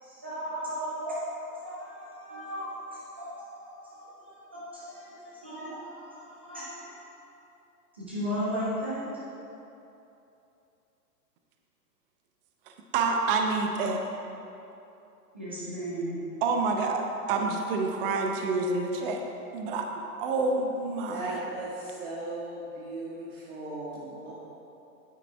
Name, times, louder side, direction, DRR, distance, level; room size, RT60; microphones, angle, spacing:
voice 1, 0.0-6.9 7.9-9.1 15.3-16.2, equal, 10° right, -9 dB, 0.3 m, -36 dB
voice 2, 12.9-14.0 16.4-17.0 17.3-19.2 19.5-19.9 20.2-21.3, right 3 dB, 35° right, 3 dB, 0.8 m, -27 dB
voice 3, 21.1-24.3, right 2 dB, 50° right, -7 dB, 1.9 m, -37 dB
9.3 x 8.9 x 3.4 m, 2.8 s
hypercardioid pair, 135°, 48 cm